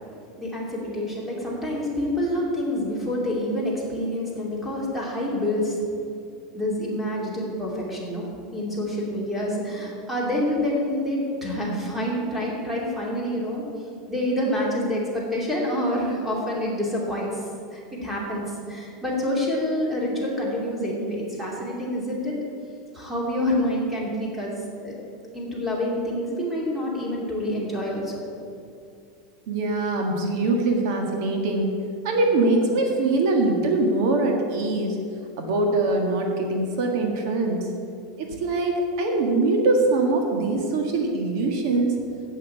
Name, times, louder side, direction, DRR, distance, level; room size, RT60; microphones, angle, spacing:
voice 1, 0.4-5.8 6.5-8.3 8.5-13.6 14.1-22.3 22.9-24.9 25.3-28.2, left 1 dB, 5° right, -4 dB, 2.7 m, -27 dB
voice 2, 29.5-31.8 32.0-35.0 35.4-37.7 38.2-42.0, right 2 dB, 65° right, 2 dB, 1.7 m, -23 dB
8.5 x 8.3 x 8.4 m, 2.5 s
supercardioid pair, 150°, 2 cm